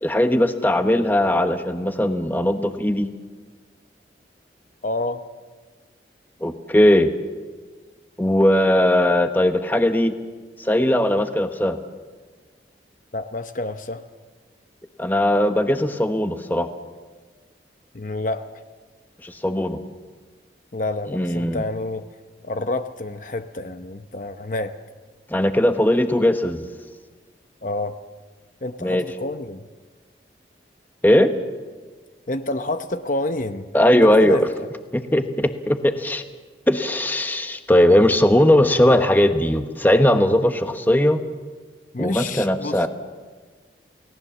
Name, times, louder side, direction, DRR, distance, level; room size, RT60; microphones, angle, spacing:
voice 1, 0.0-3.1 6.4-7.1 8.2-10.1 10.6-11.8 15.0-16.7 19.2-19.8 21.1-21.6 25.3-26.6 28.8-29.0 31.0-31.3 33.7-34.5 34.9-36.2 36.7-41.2 42.0-42.9, left 1 dB, 10° left, 7 dB, 1.1 m, -19 dB
voice 2, 4.8-5.2 13.1-14.0 17.9-18.6 20.7-22.0 22.4-24.7 27.6-28.0 28.6-29.7 32.3-34.7 41.9-42.9, left 2 dB, 45° left, 9 dB, 0.8 m, -28 dB
29.5 x 18.0 x 7.3 m, 1.4 s
head